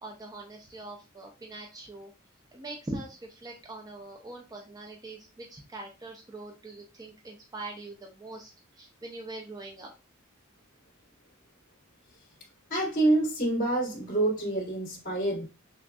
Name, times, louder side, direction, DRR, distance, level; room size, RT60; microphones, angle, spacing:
voice 1, 0.0-2.1 2.5-9.9, right 2 dB, 20° right, 0.6 m, -42 dB
voice 2, 12.7-15.4, right 2 dB, 40° left, 2.4 m, -27 dB
6.0 x 2.5 x 2.3 m
head